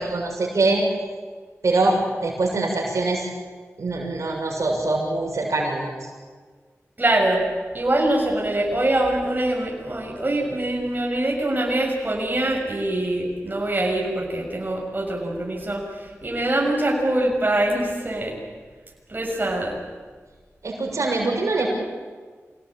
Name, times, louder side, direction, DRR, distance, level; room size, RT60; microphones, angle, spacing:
voice 1, 0.1-0.8 1.6-3.2 3.8-5.9 20.6-21.7, right 2 dB, 80° right, -1 dB, 6.8 m, -23 dB
voice 2, 7.0-7.5 7.7-15.8 16.2-18.4 19.1-19.8, right 1 dB, 35° right, -1 dB, 7.1 m, -23 dB
26.5 x 18.0 x 8.9 m, 1.5 s
wide cardioid pair, 60°, 5 cm